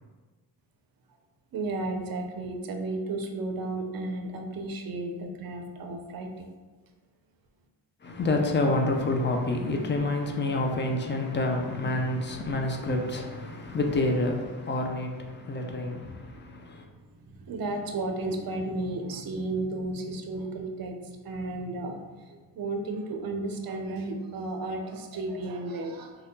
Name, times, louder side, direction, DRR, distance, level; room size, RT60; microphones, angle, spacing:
voice 1, 1.5-6.4 17.3-26.2, right 2 dB, 50° right, 0.5 m, -33 dB
voice 2, 8.0-16.9, left 2 dB, 25° left, 0.4 m, -28 dB
2.6 x 2.3 x 3.5 m
cardioid pair, 100°, 45 cm